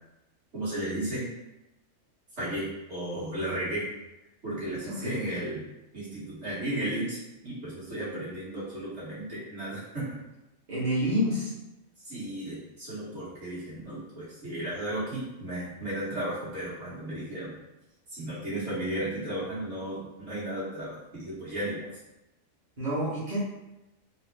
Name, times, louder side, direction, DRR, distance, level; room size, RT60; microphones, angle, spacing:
voice 1, 0.5-1.3 2.4-3.9 4.4-5.6 5.9-10.2 12.0-17.6 18.1-21.9, right 1 dB, 55° right, -10 dB, 1.8 m, -34 dB
voice 2, 4.8-5.2 10.7-11.5 22.8-23.4, equal, 35° right, -10 dB, 1.1 m, -28 dB
4.1 x 2.0 x 3.2 m, 0.97 s
omnidirectional pair, 1.4 m